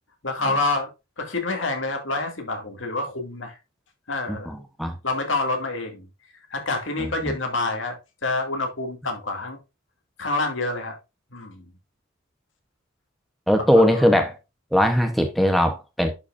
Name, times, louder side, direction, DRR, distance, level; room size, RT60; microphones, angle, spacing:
voice 1, 0.2-0.9 1.2-3.6 4.1-4.5 5.0-6.1 6.5-9.6 10.2-11.0 11.3-11.6 13.8-14.1, left 2 dB, 65° left, 2.4 m, -27 dB
voice 2, 4.3-5.0 7.0-7.3 13.5-14.3 14.7-16.1, equal, ahead, 0.9 m, -20 dB
11.0 x 5.7 x 2.6 m
head